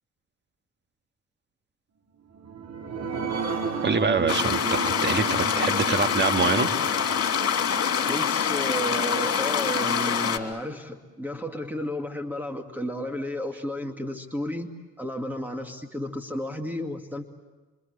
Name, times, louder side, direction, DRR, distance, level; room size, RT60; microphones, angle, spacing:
sound 1, 2.3-9.4 9.8-9.9 10.3-10.4, right 5 dB, 60° right, 3.5 m, -34 dB
voice 1, 3.8-6.7, right 4 dB, 35° right, 7 dB, 1.9 m, -25 dB
sound 2, 4.3-10.4, left 7 dB, 50° left, 3.1 m, -25 dB
voice 2, 8.1-14.7 15.0-17.3, equal, 5° right, 5 dB, 2.2 m, -32 dB
27.0 x 25.5 x 8.1 m, 1.3 s
cardioid pair, 90°, 30 cm